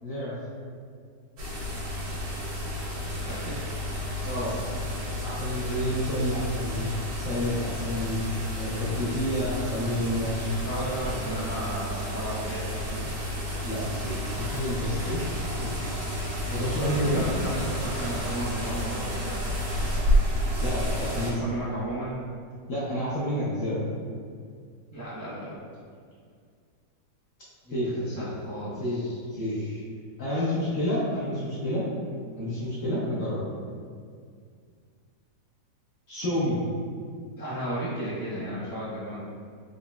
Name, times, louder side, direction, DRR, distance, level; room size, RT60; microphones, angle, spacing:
voice 1, 0.0-0.3 4.2-4.5 5.2-6.9 7.2-8.2 8.5-10.3 13.6-15.2 15.6-15.9 16.5-17.2 20.6-21.4 22.7-23.8 27.7-28.1 28.8-29.0 29.3-29.5 30.2-31.8 32.4-33.4 36.1-36.6, equal, 60° left, -9 dB, 0.9 m, -29 dB
sound 1, 1.4-21.3, equal, 75° right, 1.5 m, -31 dB
voice 2, 3.2-3.6 10.2-13.1 16.9-19.6 21.1-22.2 24.9-25.6 27.6-29.8 30.3-30.4 37.4-39.3, right 1 dB, 15° right, -12 dB, 0.8 m, -35 dB
3.9 x 2.9 x 2.2 m, 2.1 s
omnidirectional pair, 1.8 m